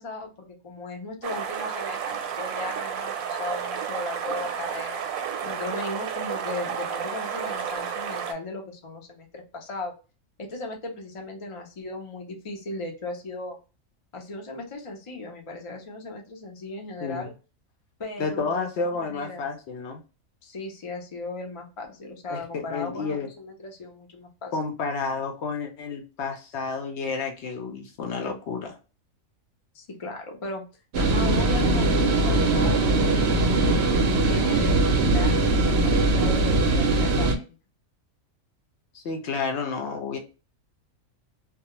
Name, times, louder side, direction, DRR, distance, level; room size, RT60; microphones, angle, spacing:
voice 1, 0.0-5.0 5.4-9.9 10.4-13.6 14.1-17.3 18.0-19.5 20.4-24.6 29.7-30.6 31.0-33.5 34.0-37.6, left 2 dB, 45° left, 2 dB, 0.4 m, -36 dB
sound 1, 1.2-8.3, right 7 dB, 90° right, 1.0 m, -31 dB
voice 2, 18.2-20.0 22.3-23.3 24.5-28.8 38.9-40.2, left 4 dB, 65° left, 4 dB, 0.8 m, -30 dB
sound 2, 30.9-37.3, right 2 dB, 65° right, 0.7 m, -21 dB
2.3 x 2.2 x 2.8 m, 0.33 s
omnidirectional pair, 1.4 m